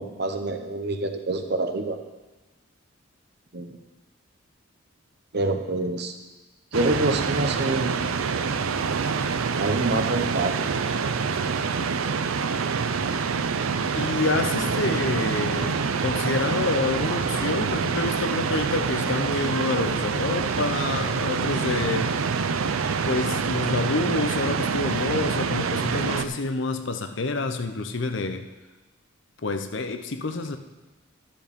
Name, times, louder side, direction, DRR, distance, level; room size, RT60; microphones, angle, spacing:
voice 1, 0.0-2.0 3.5-3.8 5.3-6.1 6.7-8.0 9.6-10.8, right 2 dB, 50° right, 6 dB, 0.9 m, -26 dB
sound 1, 6.7-26.2, right 5 dB, 85° right, 0.5 m, -26 dB
voice 2, 13.9-22.1 23.0-28.5 29.4-30.6, left 3 dB, 60° left, 8 dB, 0.7 m, -28 dB
12.0 x 7.3 x 5.2 m, 1.2 s
head